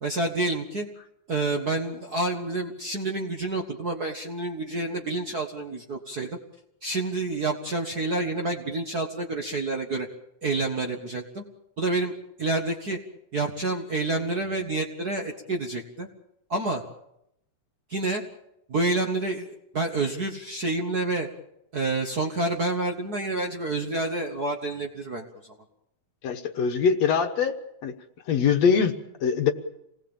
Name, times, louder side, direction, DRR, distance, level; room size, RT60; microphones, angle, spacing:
voice 1, 0.0-0.9 1.3-6.3 6.8-10.1 10.4-11.4 11.8-12.1 12.4-13.0 13.3-16.1 16.5-16.8 17.9-18.2 18.7-21.3 21.7-25.5, right 2 dB, 40° right, 2 dB, 1.6 m, -28 dB
voice 2, 26.2-27.6 27.8-27.9 28.3-29.5, left 6 dB, 65° left, 5 dB, 2.3 m, -23 dB
27.0 x 19.5 x 7.2 m, 0.81 s
omnidirectional pair, 3.6 m